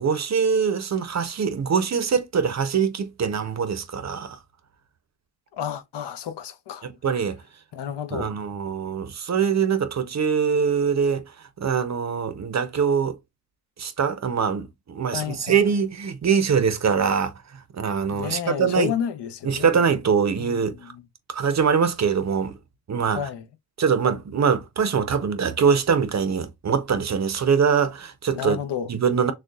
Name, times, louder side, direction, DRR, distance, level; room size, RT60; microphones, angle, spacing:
voice 1, 0.0-4.4 6.8-7.4 8.1-11.2 11.6-13.2 13.8-17.3 17.7-18.9 19.4-20.8 21.3-22.6 22.9-23.2 23.8-28.6 28.9-29.3, right 6 dB, 45° right, 0.6 m, -23 dB
voice 2, 5.5-6.9 7.7-8.4 15.1-15.6 18.1-19.8 20.4-21.0 23.1-23.5 28.3-28.9, left 9 dB, 85° left, 0.7 m, -31 dB
6.5 x 2.2 x 2.3 m
wide cardioid pair, 160°, 40 cm